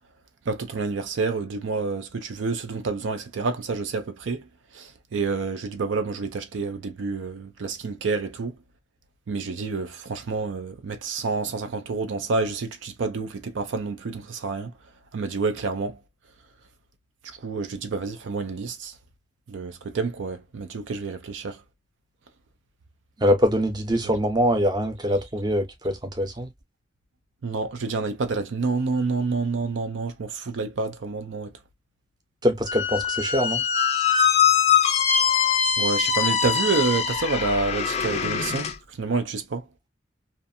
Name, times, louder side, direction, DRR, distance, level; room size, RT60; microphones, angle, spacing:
voice 1, 0.5-4.4 4.7-8.5 9.3-14.7 15.1-16.0 17.4-18.9 19.5-21.6 24.0-24.1 27.4-31.5 35.8-38.7 39.0-39.6, right 4 dB, 75° right, 0.4 m, -28 dB
voice 2, 23.2-26.5 32.4-33.6, equal, 20° right, 0.6 m, -23 dB
Squeak, 32.7-38.7, left 7 dB, 35° left, 0.4 m, -22 dB
2.5 x 2.5 x 2.6 m
head